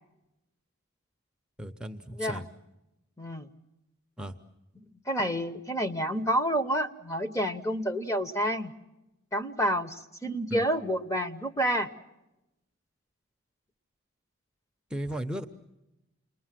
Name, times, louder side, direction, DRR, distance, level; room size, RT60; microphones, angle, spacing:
voice 1, 1.6-2.5 4.2-4.3 10.5-10.6 14.9-15.5, right 1 dB, 5° right, 5 dB, 0.8 m, -35 dB
voice 2, 3.2-3.5 5.1-8.7 9.3-11.9, equal, 15° left, 9 dB, 1.1 m, -29 dB
29.0 x 21.0 x 7.6 m, 0.94 s
head